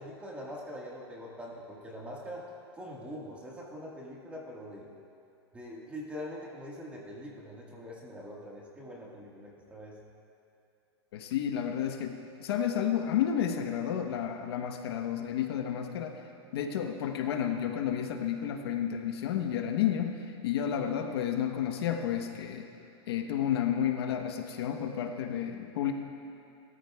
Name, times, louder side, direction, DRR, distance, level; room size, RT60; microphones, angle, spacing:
voice 1, 0.0-2.5 2.7-4.9 5.5-10.0, equal, 10° right, -3 dB, 1.6 m, -43 dB
voice 2, 11.1-16.2 16.5-20.1 20.4-22.7 23.1-25.9, left 9 dB, 70° left, 4 dB, 1.1 m, -31 dB
19.5 x 13.5 x 2.3 m, 2.8 s
supercardioid pair, 155°, 14 cm